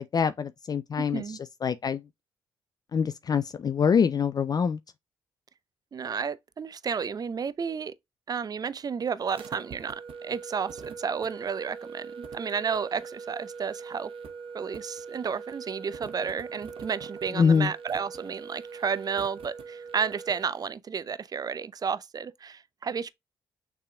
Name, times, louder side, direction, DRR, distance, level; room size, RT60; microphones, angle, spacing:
voice 1, 0.0-2.0 2.9-4.8 17.3-17.7, left 6 dB, 40° left, 0.4 m, -25 dB
voice 2, 1.0-1.4 5.9-7.9 8.3-14.1 14.5-23.1, right 6 dB, 40° right, 0.5 m, -32 dB
sound 1, 9.3-20.6, right 5 dB, 60° right, 1.0 m, -42 dB
6.5 x 3.5 x 2.2 m
hypercardioid pair, 45°, 10 cm